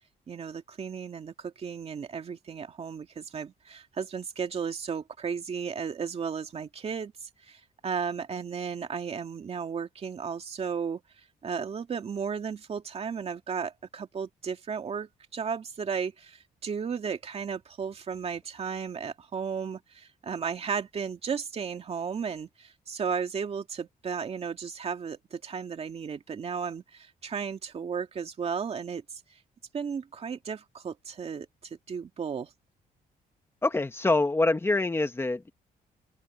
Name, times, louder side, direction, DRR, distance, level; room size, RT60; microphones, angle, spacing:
voice 1, 0.3-11.0 11.4-29.0 29.7-32.5, right 6 dB, 40° right, 2.3 m, -34 dB
voice 2, 33.6-35.5, left 2 dB, 15° left, 1.6 m, -25 dB
open air
cardioid pair, 135°, 16 cm